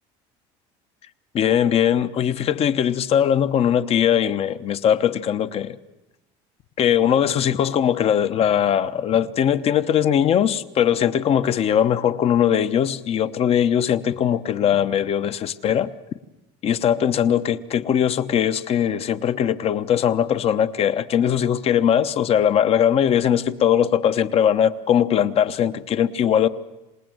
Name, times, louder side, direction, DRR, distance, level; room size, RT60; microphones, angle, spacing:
voice 1, 1.3-5.8 6.8-15.9 16.6-26.5, left 9 dB, 45° left, 1.0 m, -20 dB
27.0 x 19.5 x 7.9 m
cardioid pair, 120°, 14 cm